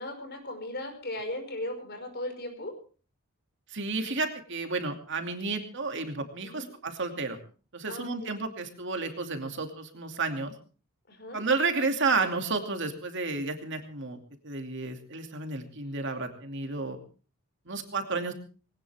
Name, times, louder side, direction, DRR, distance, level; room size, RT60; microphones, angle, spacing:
voice 1, 0.0-2.7 6.4-6.7 7.9-8.3 11.1-11.4, left 1 dB, 45° left, 6 dB, 5.3 m, -37 dB
voice 2, 3.7-7.4 7.7-10.5 11.3-14.2 14.4-17.0 17.7-18.3, right 3 dB, 55° right, 5 dB, 2.6 m, -31 dB
20.5 x 18.5 x 3.5 m, 0.38 s
head